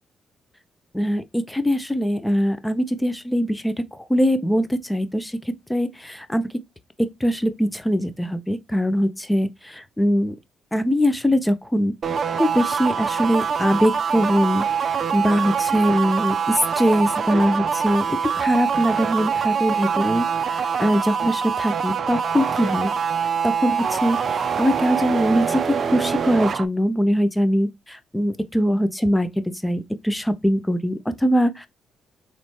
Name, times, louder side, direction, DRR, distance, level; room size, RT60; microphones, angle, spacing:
voice 1, 0.9-3.8 4.1-6.5 7.0-9.5 9.7-10.3 10.7-11.9 12.3-22.9 23.4-25.6 25.9-29.3 29.6-31.7, equal, 10° left, 0.6 m, -22 dB
sound 1, 12.0-26.7, right 6 dB, 50° right, 0.5 m, -24 dB
4.0 x 3.2 x 3.1 m
cardioid pair, 95°, 0 cm